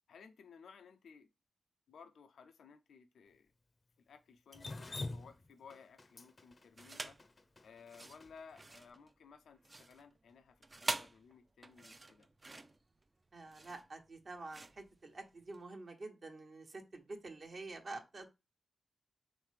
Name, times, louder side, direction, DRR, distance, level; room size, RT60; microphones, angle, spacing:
voice 1, 0.1-1.3 1.9-3.5 4.0-7.2 7.6-12.3, left 6 dB, 90° left, 0.5 m, -58 dB
Drip, 4.5-8.7, left 2 dB, 35° left, 0.5 m, -46 dB
sound 1, 6.7-7.3 7.8-15.6, right 2 dB, 30° right, 0.4 m, -45 dB
voice 2, 13.3-18.3, right 3 dB, 55° right, 1.0 m, -48 dB
5.0 x 3.2 x 3.2 m
cardioid pair, 80°, 0 cm